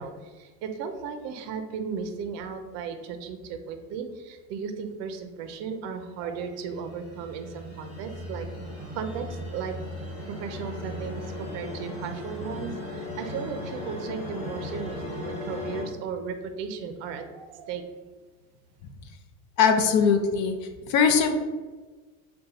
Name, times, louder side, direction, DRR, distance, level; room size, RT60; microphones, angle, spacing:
voice 1, 0.0-8.5 8.9-9.8 10.3-17.8, right 6 dB, 50° right, 7 dB, 0.5 m, -35 dB
sound 1, 6.2-15.8, left 1 dB, 20° left, 1.3 m, -37 dB
voice 2, 19.6-20.6 20.9-21.3, left 6 dB, 60° left, 5 dB, 0.5 m, -20 dB
3.8 x 2.2 x 4.1 m, 1.3 s
cardioid pair, 140°, 33 cm